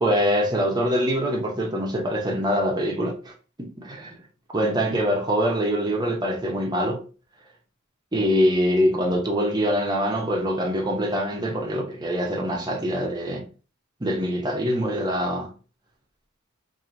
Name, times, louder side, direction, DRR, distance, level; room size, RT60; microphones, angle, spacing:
voice 1, 0.0-3.3 3.6-4.2 4.5-7.0 8.1-13.5 14.0-15.5, equal, 20° right, 0.8 m, -24 dB
3.0 x 2.7 x 3.8 m
head